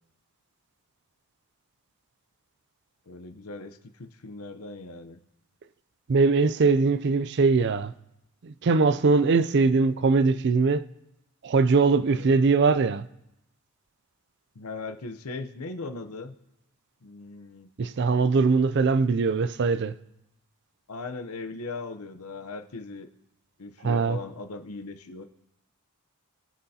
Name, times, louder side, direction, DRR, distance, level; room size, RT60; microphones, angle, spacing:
voice 1, 3.1-5.2 12.1-12.4 14.5-16.3 17.0-17.7 20.9-23.1 23.6-25.2, left 3 dB, 85° left, 0.8 m, -39 dB
voice 2, 6.1-7.9 8.4-10.8 11.4-13.1 17.8-19.9 23.8-24.2, right 4 dB, 50° right, 0.4 m, -21 dB
22.5 x 7.9 x 2.8 m
head